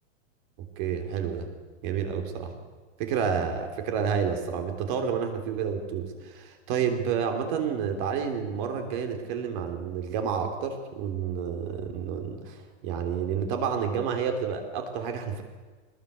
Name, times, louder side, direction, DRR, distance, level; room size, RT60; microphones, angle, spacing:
voice 1, 0.6-1.5 1.8-2.5 3.0-15.4, right 7 dB, 40° right, 6 dB, 3.5 m, -30 dB
22.5 x 20.5 x 8.2 m, 1.4 s
supercardioid pair, 165°, 37 cm